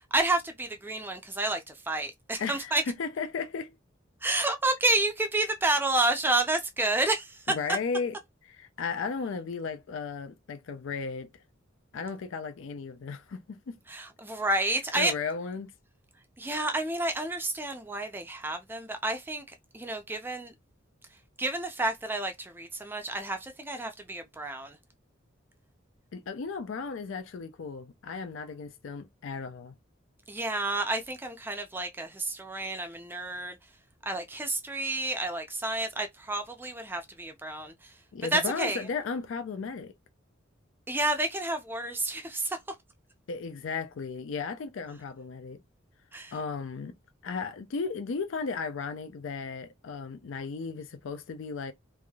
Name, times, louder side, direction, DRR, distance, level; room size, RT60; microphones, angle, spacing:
voice 1, 0.1-2.8 4.2-7.5 13.9-15.1 16.4-19.4 19.7-20.5 21.4-24.8 30.3-33.6 34.0-37.9 38.3-38.8 40.9-42.6 46.1-46.4, right 2 dB, 10° right, 0.4 m, -30 dB
voice 2, 2.4-2.7 3.0-3.7 7.5-8.1 8.5-11.3 11.9-13.8 15.0-15.7 26.1-29.7 38.1-39.9 43.3-45.6 46.3-46.9 47.2-51.7, left 5 dB, 75° left, 0.4 m, -35 dB
3.3 x 2.5 x 2.2 m
head